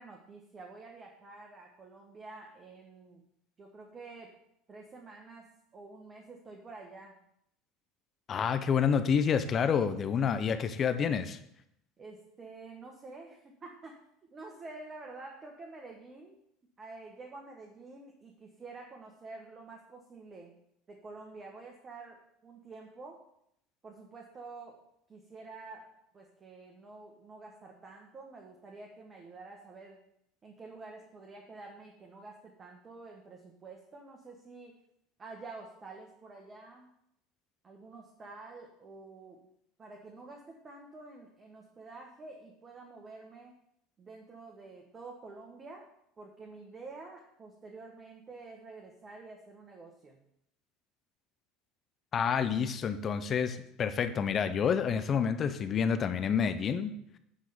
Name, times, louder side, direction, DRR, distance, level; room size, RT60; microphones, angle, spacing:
voice 1, 0.0-3.3 3.6-4.3 4.7-5.4 5.7-7.2 12.0-14.0 14.3-16.4 16.8-20.5 20.9-23.3 23.8-30.0 30.4-34.7 35.2-36.9 37.6-39.5 39.8-43.5 44.0-45.9 46.2-50.2, right 3 dB, 30° right, 1 dB, 1.4 m, -49 dB
voice 2, 8.3-11.4 52.1-56.9, left 7 dB, 40° left, 10 dB, 0.8 m, -28 dB
8.9 x 3.8 x 7.0 m, 0.74 s
hypercardioid pair, 85°, 0 cm